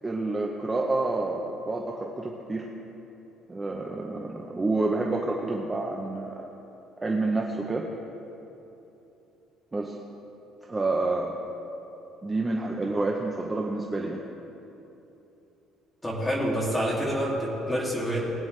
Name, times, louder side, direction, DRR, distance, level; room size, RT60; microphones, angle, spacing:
voice 1, 0.0-2.7 3.5-6.5 7.0-7.8 9.7-10.0 10.7-11.3 12.2-14.2, right 2 dB, 15° right, -1 dB, 0.7 m, -28 dB
voice 2, 16.0-18.3, equal, 10° left, -5 dB, 2.5 m, -27 dB
21.5 x 9.2 x 3.3 m, 3.0 s
cardioid pair, 175°, 0 cm